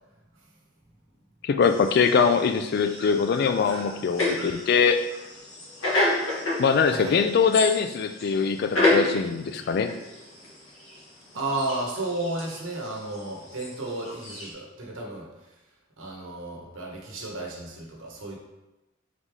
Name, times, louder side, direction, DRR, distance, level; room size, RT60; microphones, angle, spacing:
voice 1, 1.4-5.0 6.6-9.9, left 5 dB, 50° left, 7 dB, 0.3 m, -22 dB
sound 1, 1.6-14.5, left 2 dB, 80° left, 1.1 m, -31 dB
voice 2, 6.9-7.2 9.5-9.6 11.3-15.3 16.0-18.4, right 2 dB, 80° right, -1 dB, 1.1 m, -33 dB
4.0 x 3.2 x 3.5 m, 1.0 s
head